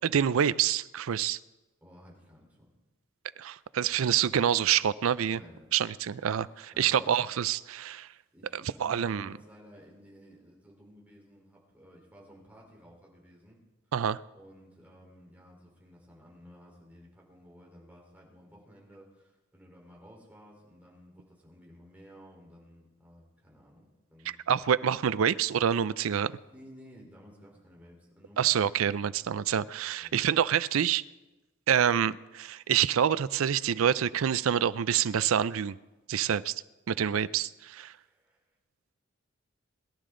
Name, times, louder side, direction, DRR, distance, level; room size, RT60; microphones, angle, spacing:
voice 1, 0.0-1.4 3.4-5.4 5.7-8.1 8.8-9.3 13.9-14.2 24.5-26.3 28.4-31.0 31.7-35.8 36.1-36.5 36.9-37.9, right 8 dB, 75° right, 18 dB, 0.4 m, -27 dB
voice 2, 1.8-2.7 5.3-5.8 6.7-7.1 8.3-13.6 14.3-24.4 26.4-29.2 30.0-30.2 37.0-37.4 38.0-38.4, equal, 10° right, -3 dB, 3.9 m, -54 dB
23.0 x 12.0 x 3.8 m, 1.1 s
head